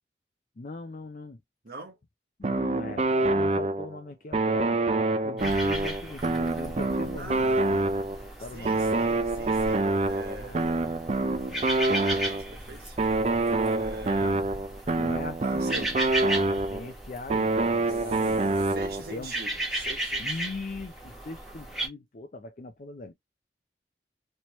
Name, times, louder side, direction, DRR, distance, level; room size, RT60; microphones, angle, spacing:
voice 1, 0.6-1.4 2.4-4.8 5.2-7.9 8.4-9.1 10.2-10.6 11.2-11.6 14.0-14.4 15.0-15.9 16.4-18.5 19.1-19.3 20.2-23.1, left 2 dB, 45° left, 0.5 m, -40 dB
voice 2, 1.6-2.0 7.2-7.7 8.5-11.0 12.2-14.4 15.4-15.9 17.9-20.4, right 2 dB, 65° right, 1.3 m, -44 dB
sound 1, 2.4-4.0 4.3-8.3 8.7-12.5 13.0-16.9 17.3-19.1, right 2 dB, 35° right, 0.4 m, -26 dB
sound 2, 5.4-21.9, right 1 dB, ahead, 1.1 m, -36 dB
3.3 x 2.9 x 3.0 m
head